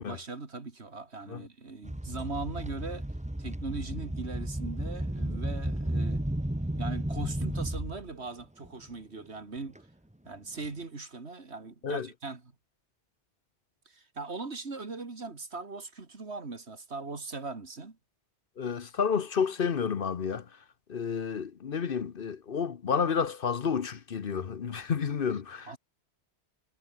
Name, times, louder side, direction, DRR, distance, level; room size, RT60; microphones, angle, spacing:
voice 1, 0.0-3.0 3.4-6.2 6.8-9.8 10.3-12.4 13.9-18.0 25.7-25.8, right 3 dB, 70° right, 2.8 m, -39 dB
sound 1, 1.8-8.1 8.6-8.8 9.8-9.9 10.6-10.7, right 1 dB, 5° right, 1.2 m, -33 dB
voice 2, 18.6-20.5 20.9-25.8, left 6 dB, 55° left, 1.1 m, -30 dB
omnidirectional pair, 1.1 m